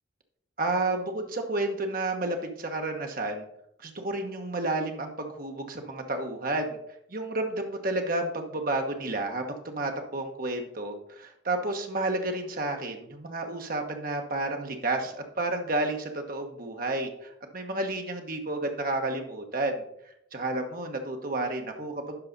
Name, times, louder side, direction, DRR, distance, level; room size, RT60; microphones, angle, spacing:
voice 1, 0.6-3.5 3.8-6.8 7.1-19.8 20.3-22.2, right 2 dB, 45° right, 4 dB, 1.1 m, -31 dB
12.0 x 4.8 x 4.0 m, 0.74 s
head